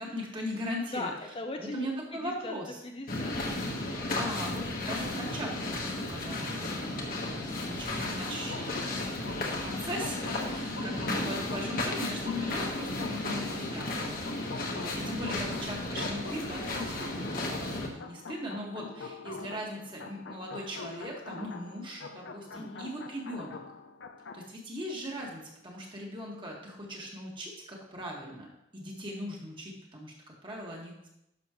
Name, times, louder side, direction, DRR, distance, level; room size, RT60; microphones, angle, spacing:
voice 1, 0.0-1.1 1.6-2.8 4.0-14.1 14.5-23.6 24.3-28.5 28.7-31.1, equal, 25° right, -1 dB, 1.7 m, -39 dB
voice 2, 0.9-2.5 2.8-3.4 22.5-22.9, left 2 dB, 30° left, 3 dB, 0.6 m, -39 dB
sound 1, 3.1-17.9, left 2 dB, 50° left, 1.3 m, -34 dB
sound 2, 7.6-24.5, left 4 dB, 85° left, 0.6 m, -44 dB
11.0 x 6.2 x 3.0 m, 0.83 s
head